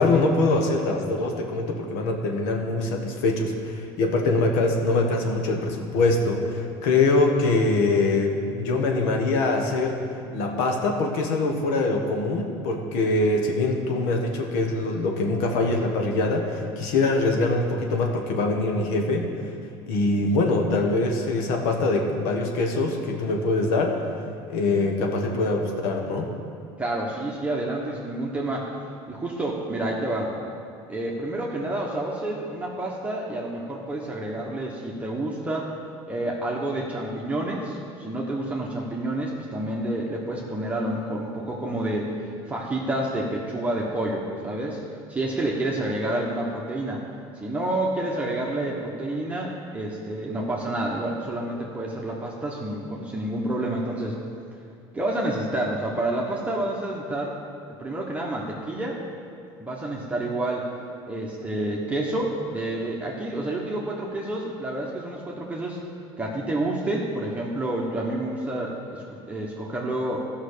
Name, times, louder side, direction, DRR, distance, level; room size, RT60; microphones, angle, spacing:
voice 1, 0.0-10.0 10.3-19.3 19.9-24.0 24.5-26.3, left 2 dB, 80° left, 2 dB, 1.4 m, -23 dB
voice 2, 26.8-28.7 29.1-30.3 30.9-35.7 36.0-42.1 42.5-44.8 45.1-47.0 47.4-54.2 54.9-57.4 57.8-59.0 59.6-60.7 61.0-65.8 66.2-70.2, right 1 dB, 10° right, -3 dB, 1.2 m, -29 dB
13.0 x 5.6 x 6.7 m, 2.3 s
cardioid pair, 125°, 12 cm